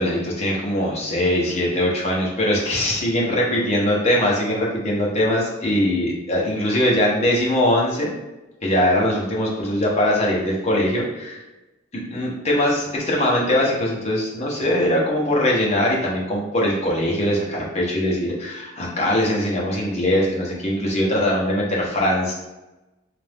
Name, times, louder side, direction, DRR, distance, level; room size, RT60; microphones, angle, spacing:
voice 1, 0.0-8.1 8.6-11.4 12.1-22.3, left 1 dB, 30° left, -3 dB, 0.8 m, -21 dB
3.9 x 2.5 x 3.4 m, 1.0 s
head